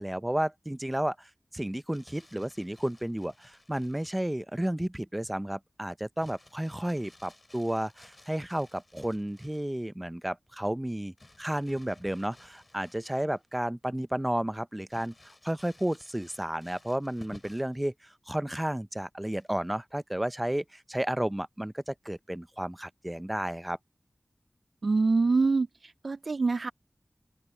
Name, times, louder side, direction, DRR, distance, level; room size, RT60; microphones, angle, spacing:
voice 1, 0.0-17.9 18.3-23.8, right 1 dB, 15° right, 0.7 m, -32 dB
Crumpling crinkling, 1.7-4.3 6.2-9.7 11.2-13.5 13.9-14.0 14.9-17.8 19.3-19.7, left 2 dB, 35° left, 6.2 m, -56 dB
voice 2, 24.8-25.7 26.0-26.7, right 3 dB, 75° right, 0.3 m, -24 dB
open air
wide cardioid pair, 50°, 0 cm